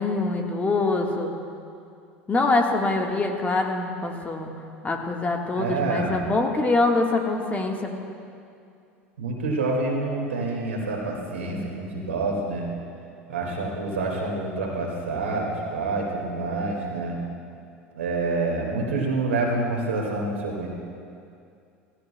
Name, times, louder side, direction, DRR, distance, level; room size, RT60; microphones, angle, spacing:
voice 1, 0.0-1.3 2.3-4.5 4.8-7.9, left 3 dB, 20° left, 2 dB, 1.4 m, -24 dB
voice 2, 5.6-6.2 9.2-12.7 13.3-17.2 17.9-20.7, right 3 dB, 85° right, -1 dB, 2.0 m, -27 dB
16.0 x 15.5 x 2.2 m, 2.5 s
hypercardioid pair, 80°, 7 cm